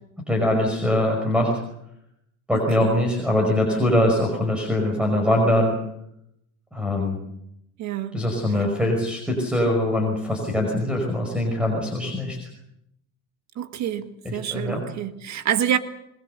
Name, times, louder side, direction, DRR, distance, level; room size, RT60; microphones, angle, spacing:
voice 1, 0.3-1.5 2.5-5.8 6.7-7.2 8.1-12.5 14.2-14.8, left 1 dB, ahead, 1 dB, 5.6 m, -22 dB
voice 2, 2.5-2.9 7.8-8.2 13.6-15.8, right 10 dB, 40° right, 9 dB, 1.7 m, -27 dB
27.0 x 21.5 x 6.9 m, 0.80 s
supercardioid pair, 140°, 42 cm